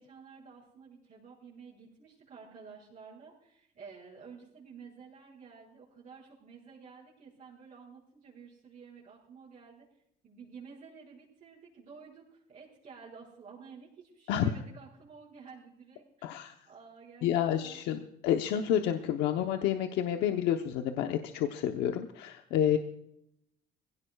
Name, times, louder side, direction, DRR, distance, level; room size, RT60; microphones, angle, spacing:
voice 1, 0.0-9.9 10.2-16.4 16.7-17.8, right 5 dB, 50° right, -7 dB, 5.4 m, -51 dB
voice 2, 16.2-16.5 17.2-22.8, left 10 dB, 90° left, 5 dB, 0.9 m, -29 dB
21.5 x 16.5 x 2.4 m, 0.76 s
cardioid pair, 110°, 17 cm